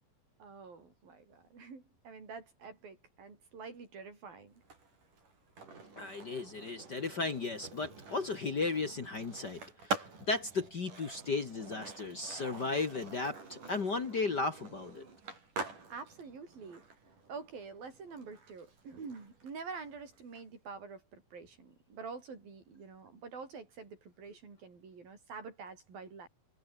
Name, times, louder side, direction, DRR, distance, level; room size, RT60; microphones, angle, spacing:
voice 1, 0.4-4.6 15.9-16.8 17.3-26.3, right 5 dB, 75° right, 8.0 m, -47 dB
Skateboard, 4.6-20.4, right 4 dB, 60° right, 8.2 m, -46 dB
voice 2, 6.0-15.1, left 3 dB, 40° left, 1.5 m, -35 dB
omnidirectional pair, 4.1 m